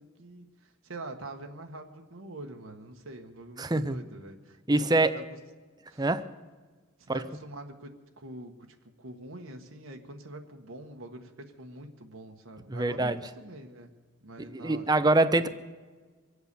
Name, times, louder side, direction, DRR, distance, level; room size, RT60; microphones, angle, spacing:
voice 1, 0.0-4.6 5.0-5.2 5.9-6.1 7.0-13.9 14.2-15.1, right 2 dB, 75° right, 1.4 m, -45 dB
voice 2, 3.6-4.0 4.7-5.2 6.0-6.3 7.1-7.3 12.7-13.2 14.5-15.5, right 2 dB, 20° right, 0.6 m, -24 dB
24.0 x 8.2 x 6.8 m
head